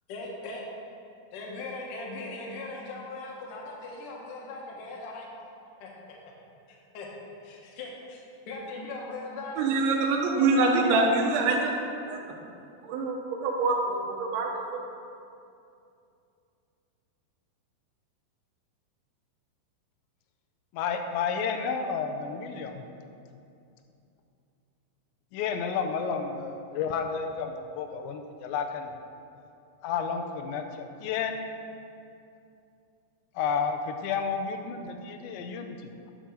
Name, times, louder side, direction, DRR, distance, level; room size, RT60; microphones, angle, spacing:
voice 1, 0.1-0.6 1.3-5.3 5.8-5.9 6.9-7.1 7.4-9.9 10.3-11.1, left 3 dB, 60° left, -2 dB, 2.5 m, -39 dB
voice 2, 9.6-11.8 12.1-12.2 12.8-13.2 13.4-14.8, right 3 dB, 85° right, -1 dB, 3.4 m, -25 dB
voice 3, 20.7-22.8 25.3-28.9 29.8-31.4 33.4-35.8, left 6 dB, 85° left, 5 dB, 3.0 m, -31 dB
11.0 x 5.3 x 6.3 m, 2.6 s
omnidirectional pair, 5.1 m